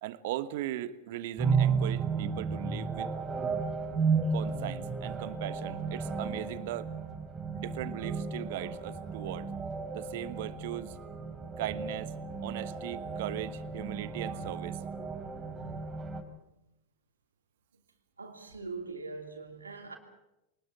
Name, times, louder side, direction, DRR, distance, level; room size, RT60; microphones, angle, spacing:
voice 1, 0.0-3.1 4.3-6.9 7.5-9.5 9.9-11.0 11.6-12.1 12.4-14.8, right 14 dB, 55° right, 1.2 m, -38 dB
sound 1, 1.4-16.2, right 5 dB, 20° right, 3.2 m, -33 dB
voice 2, 18.2-20.0, right 4 dB, 85° right, 2.9 m, -42 dB
24.5 x 19.5 x 7.4 m
figure-of-eight pair, 90°, 0 cm